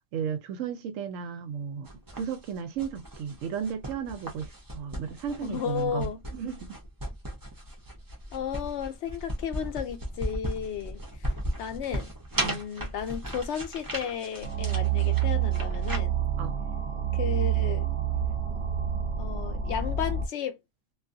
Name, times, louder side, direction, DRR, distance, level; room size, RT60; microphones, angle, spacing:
voice 1, 0.0-1.9 2.1-6.8 12.4-12.6 16.4-16.7, right 7 dB, 70° right, 0.9 m, -34 dB
sound 1, 1.8-16.0, right 1 dB, 30° right, 0.4 m, -36 dB
voice 2, 5.4-6.2 8.3-11.3 11.6-16.2 17.1-17.9 19.2-20.6, left 8 dB, 65° left, 0.7 m, -34 dB
sound 2, 14.4-20.3, right 9 dB, 45° right, 0.9 m, -28 dB
2.4 x 2.3 x 2.6 m
omnidirectional pair, 1.5 m